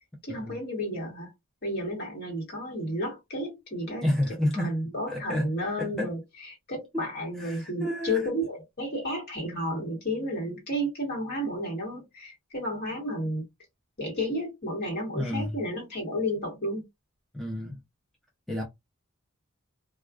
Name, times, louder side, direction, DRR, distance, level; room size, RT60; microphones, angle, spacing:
voice 1, 0.2-1.3 1.6-4.1 4.6-6.2 6.7-13.4 14.0-16.8, equal, 50° left, 1.4 m, -32 dB
voice 2, 4.0-4.8 5.1-5.5 5.8-6.1 6.9-7.1 7.4-8.3 15.1-15.6 17.3-17.8 18.5-18.6, left 1 dB, ahead, 0.5 m, -30 dB
2.3 x 2.3 x 2.3 m
head